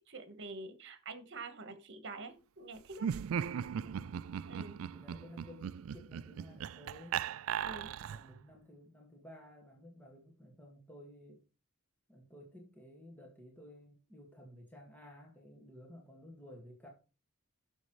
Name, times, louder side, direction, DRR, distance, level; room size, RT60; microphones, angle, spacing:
voice 1, 0.1-3.1 4.5-4.8 7.6-7.9, right 3 dB, 60° right, 1.4 m, -46 dB
Laughter, 2.9-8.4, right 8 dB, 75° right, 0.3 m, -38 dB
voice 2, 3.8-4.3 4.9-7.2 8.0-11.4 12.1-16.9, left 1 dB, 10° left, 1.9 m, -54 dB
10.5 x 7.1 x 3.2 m
head